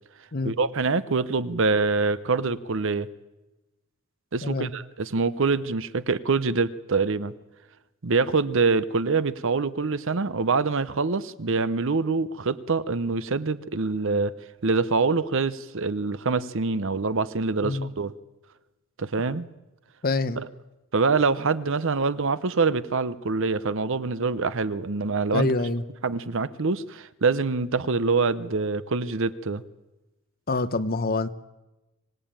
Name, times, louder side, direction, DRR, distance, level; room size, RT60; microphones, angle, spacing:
voice 1, 0.4-3.1 4.3-7.3 8.0-14.3 14.6-18.1 19.0-19.5 20.4-20.5 20.9-25.5 26.0-29.6, right 4 dB, 60° right, 15 dB, 0.8 m, -25 dB
voice 2, 20.0-20.4 25.3-25.8 30.5-31.3, left 3 dB, 45° left, 12 dB, 0.9 m, -26 dB
25.5 x 17.5 x 8.9 m, 1.1 s
head